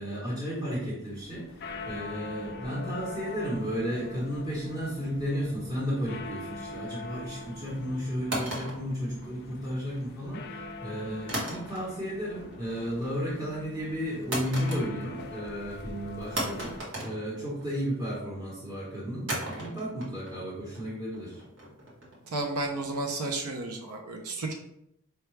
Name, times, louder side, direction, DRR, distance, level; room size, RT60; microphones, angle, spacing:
voice 1, 0.0-1.4 1.9-16.7 17.0-21.4, equal, 20° right, -7 dB, 1.0 m, -33 dB
sound 1, 1.0-16.8, left 2 dB, 45° left, 0.3 m, -43 dB
sound 2, 8.3-9.7 11.3-12.1 12.4-12.9 14.3-15.3 15.5-15.6 16.4-17.9 19.3-22.3, right 1 dB, 60° right, 1.1 m, -36 dB
voice 2, 22.3-24.5, right 2 dB, 85° right, 1 dB, 0.6 m, -32 dB
4.5 x 2.2 x 3.2 m, 0.78 s
head